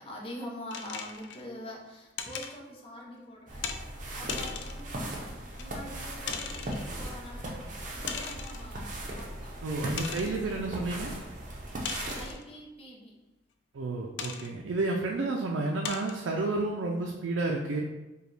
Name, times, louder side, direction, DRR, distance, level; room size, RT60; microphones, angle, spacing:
voice 1, 0.0-9.5 10.1-11.3 12.1-13.2, left 1 dB, 30° left, -3 dB, 0.7 m, -45 dB
sound 1, 0.7-1.4 2.2-2.5 3.6-3.8 4.3-4.8 5.6-5.7 6.3-6.9 8.1-8.7 9.2-9.3 10.0-10.4 11.9-12.4 14.2-14.5 15.2-15.3 15.8-16.2, left 6 dB, 70° left, 0.4 m, -38 dB
sound 2, 3.5-12.3, right 1 dB, 40° right, 0.7 m, -38 dB
voice 2, 9.6-11.1 13.7-17.8, right 2 dB, 85° right, 0 dB, 0.4 m, -31 dB
4.9 x 2.3 x 3.2 m, 1.0 s
head